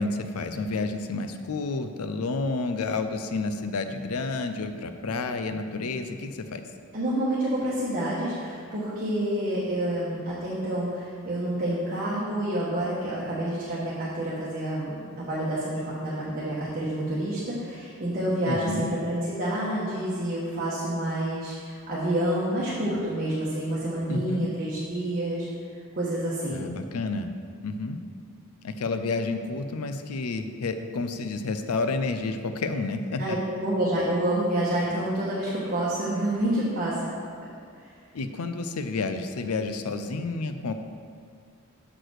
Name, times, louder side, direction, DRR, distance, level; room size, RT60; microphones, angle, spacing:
voice 1, 0.0-6.6 18.5-18.9 24.1-24.5 26.5-27.3 27.6-28.0 28.6-33.4 38.1-40.7, left 3 dB, 85° left, 8 dB, 0.5 m, -30 dB
voice 2, 6.9-25.5 26.0-26.6 33.2-37.1, right 1 dB, 45° right, -8 dB, 1.3 m, -28 dB
6.0 x 4.9 x 6.3 m, 2.2 s
head